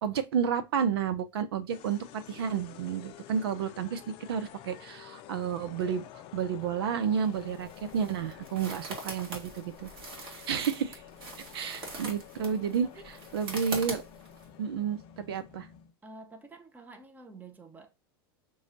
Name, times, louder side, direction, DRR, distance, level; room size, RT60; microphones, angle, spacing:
voice 1, 0.0-4.0 4.3-6.0 6.3-11.0 11.5-12.9 13.3-14.0 14.6-15.7, right 7 dB, 80° right, 0.7 m, -31 dB
sound 1, 1.7-15.9, left 11 dB, 50° left, 0.6 m, -50 dB
sound 2, 7.3-14.5, right 2 dB, 45° right, 1.8 m, -42 dB
voice 2, 16.0-18.0, right 3 dB, 15° right, 0.8 m, -49 dB
6.2 x 2.3 x 2.7 m
hypercardioid pair, 115°, 13 cm